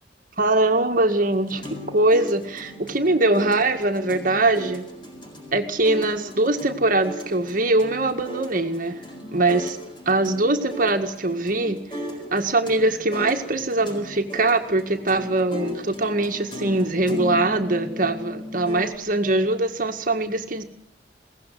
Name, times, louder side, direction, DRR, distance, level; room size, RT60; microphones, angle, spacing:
voice 1, 0.4-4.9 5.5-9.0 9.3-9.8 10.1-11.8 12.3-20.6, right 2 dB, 50° right, 5 dB, 1.9 m, -22 dB
sound 1, 1.2-19.0, equal, 25° left, 7.2 m, -36 dB
22.5 x 18.0 x 7.9 m, 0.72 s
head